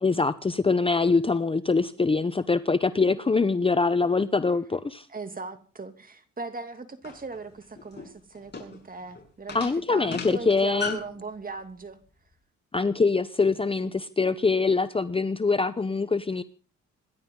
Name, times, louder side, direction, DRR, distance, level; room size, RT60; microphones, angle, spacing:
voice 1, 0.0-5.1 9.5-11.0 12.7-16.4, left 4 dB, 20° left, 0.8 m, -24 dB
voice 2, 5.1-12.0, right 4 dB, 30° right, 2.7 m, -39 dB
sound 1, 7.0-11.2, left 4 dB, 35° left, 7.3 m, -37 dB
27.0 x 11.5 x 3.9 m
cardioid pair, 90°, 30 cm